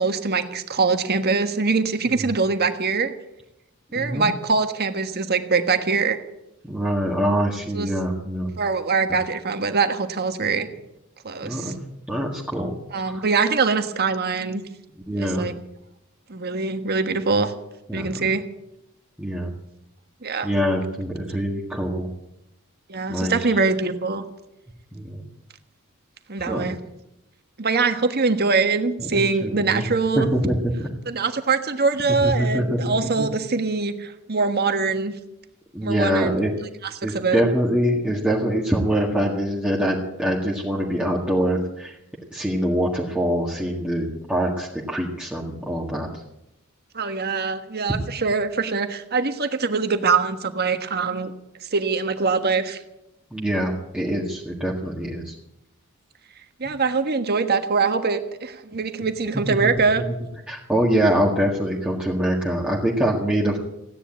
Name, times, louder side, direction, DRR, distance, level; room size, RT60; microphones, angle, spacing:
voice 1, 0.0-3.1 3.9-6.2 7.7-7.9 8.6-10.7 11.2-11.7 12.9-14.6 15.2-15.5 16.3-17.5 17.9-18.4 20.2-20.5 22.9-24.2 26.3-26.8 27.6-30.3 31.0-35.1 35.8-36.4 37.1-37.4 46.9-51.3 51.6-52.8 56.6-60.0, right 4 dB, 50° right, 8 dB, 1.4 m, -23 dB
voice 2, 4.0-4.3 6.6-8.5 10.6-10.7 11.4-11.8 12.1-12.7 13.1-13.2 15.1-15.5 17.9-18.2 19.2-19.5 20.4-22.1 23.1-23.5 24.9-25.3 26.5-26.7 29.0-29.9 30.2-30.9 32.2-33.3 35.7-36.5 37.0-42.0 42.3-46.2 47.9-48.0 53.3-55.4 59.5-59.7 60.5-63.6, equal, 5° right, -4 dB, 1.8 m, -24 dB
16.0 x 10.0 x 8.7 m, 0.87 s
head